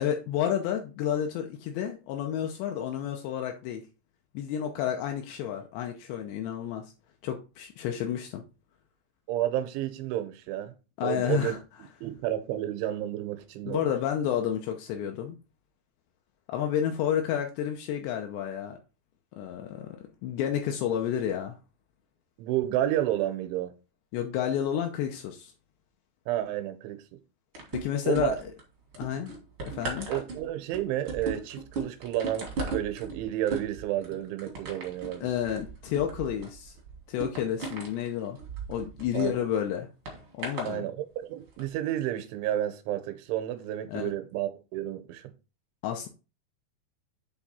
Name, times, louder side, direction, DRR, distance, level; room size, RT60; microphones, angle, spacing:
voice 1, 0.0-3.8 4.3-6.9 7.2-8.4 11.0-11.6 13.6-15.4 16.5-18.8 19.4-20.0 20.2-21.6 24.1-25.5 27.7-28.5 29.0-29.3 29.6-30.1 35.2-36.8 37.1-38.4 38.7-39.9 40.3-40.9 43.9-44.1 45.8-46.1, left 9 dB, 90° left, 2.5 m, -30 dB
voice 2, 9.3-10.7 11.0-11.6 12.0-13.8 22.4-23.7 26.3-27.0 28.1-28.4 30.1-35.3 39.1-39.4 40.6-45.3, right 13 dB, 85° right, 3.0 m, -31 dB
sound 1, 27.5-28.6 28.9-39.3 40.1-40.7 41.5-41.6, right 3 dB, 65° right, 1.2 m, -37 dB
8.0 x 3.5 x 4.2 m
omnidirectional pair, 5.6 m